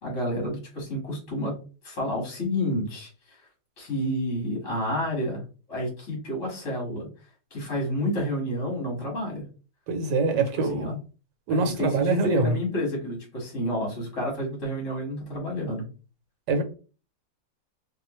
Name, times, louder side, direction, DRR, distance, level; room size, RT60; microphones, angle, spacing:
voice 1, 0.0-1.5 1.8-3.4 3.8-5.4 5.7-7.1 7.5-9.4 10.3-10.4 10.7-10.9 11.5-15.8, left 1 dB, 45° left, -2 dB, 2.1 m, -30 dB
voice 2, 9.9-11.0 11.5-12.6 16.5-16.6, right 3 dB, 85° right, 6 dB, 1.5 m, -24 dB
3.6 x 3.1 x 3.1 m, 0.35 s
omnidirectional pair, 1.9 m